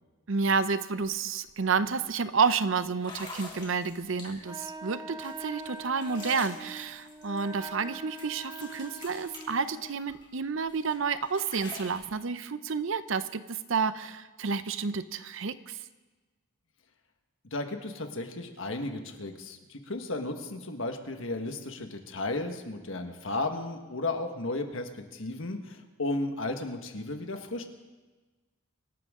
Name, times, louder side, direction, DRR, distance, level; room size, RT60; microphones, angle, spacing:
voice 1, 0.3-15.8, right 5 dB, 65° right, 13 dB, 0.6 m, -30 dB
sound 1, 1.0-1.1 1.5-1.8 2.4-2.5 3.0-4.6 5.2-7.9 8.2-10.3 10.7-12.0, left 3 dB, 20° left, 2.9 m, -47 dB
Wind instrument woodwind instrument, 4.4-10.0, right 2 dB, 15° right, 1.1 m, -43 dB
voice 2, 17.5-27.6, left 2 dB, 65° left, 5 dB, 1.5 m, -34 dB
25.0 x 12.5 x 3.7 m, 1.3 s
head